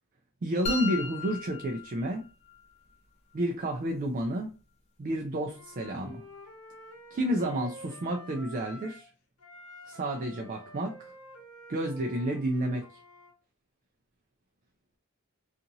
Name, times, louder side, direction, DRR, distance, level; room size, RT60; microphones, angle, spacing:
voice 1, 0.4-2.2 3.3-4.5 5.0-6.2 7.1-9.1 9.9-11.1 11.7-12.9, right 1 dB, 40° right, 0.4 m, -30 dB
sound 1, 0.7-2.7, left 4 dB, 30° left, 0.4 m, -36 dB
Wind instrument woodwind instrument, 5.4-9.1 9.4-13.3, left 1 dB, 80° left, 0.8 m, -49 dB
2.8 x 2.5 x 2.6 m
head